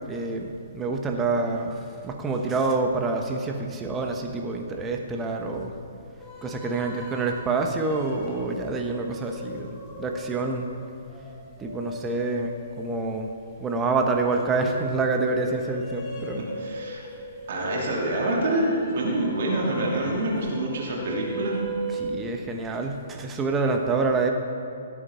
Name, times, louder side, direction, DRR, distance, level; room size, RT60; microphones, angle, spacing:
voice 1, 0.1-5.7 6.4-9.7 10.0-10.7 11.6-13.3 13.6-16.4 22.0-24.3, right 3 dB, 15° right, 3 dB, 1.1 m, -27 dB
sound 1, 6.2-22.1, equal, 25° left, 2.1 m, -38 dB
voice 2, 16.6-17.1 17.5-21.6, right 1 dB, 50° right, -3 dB, 2.4 m, -26 dB
16.5 x 8.7 x 3.5 m, 2.7 s
figure-of-eight pair, 125°, 0 cm